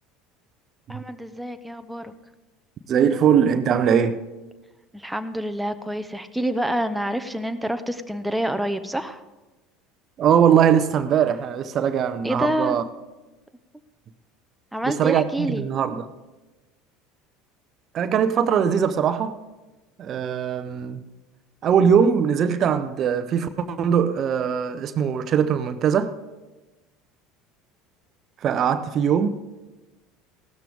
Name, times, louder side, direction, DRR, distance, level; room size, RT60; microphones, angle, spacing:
voice 1, 0.9-2.1 4.9-9.2 12.2-12.8 14.7-15.7, right 1 dB, 5° right, 0.8 m, -27 dB
voice 2, 2.9-4.2 10.2-12.8 14.9-16.1 17.9-19.4 20.0-21.0 21.6-26.1 28.4-29.4, right 8 dB, 45° right, 0.7 m, -21 dB
16.0 x 12.5 x 3.6 m
figure-of-eight pair, 70°, 0 cm